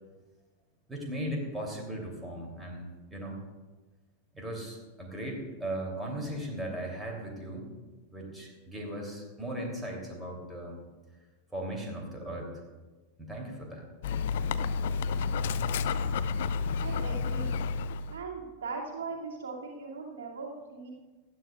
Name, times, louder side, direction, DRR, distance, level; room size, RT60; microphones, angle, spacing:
voice 1, 0.9-3.4 4.3-7.7 8.1-10.8 11.5-12.5 13.2-13.8, right 1 dB, 10° right, -1 dB, 3.1 m, -37 dB
Dog, 14.0-18.2, left 5 dB, 55° left, 0.4 m, -30 dB
voice 2, 16.8-17.6 18.1-20.9, right 4 dB, 60° right, -4 dB, 2.4 m, -39 dB
18.5 x 12.5 x 2.4 m, 1.3 s
figure-of-eight pair, 90°, 0 cm